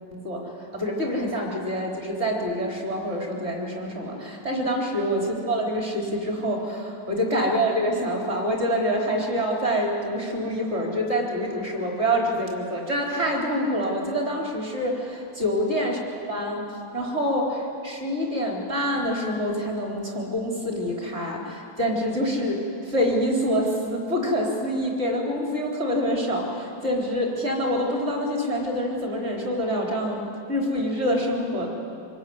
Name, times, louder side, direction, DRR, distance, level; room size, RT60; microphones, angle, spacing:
voice 1, 0.1-31.7, equal, 35° right, -1 dB, 4.4 m, -26 dB
26.0 x 21.5 x 9.6 m, 2.6 s
omnidirectional pair, 2.1 m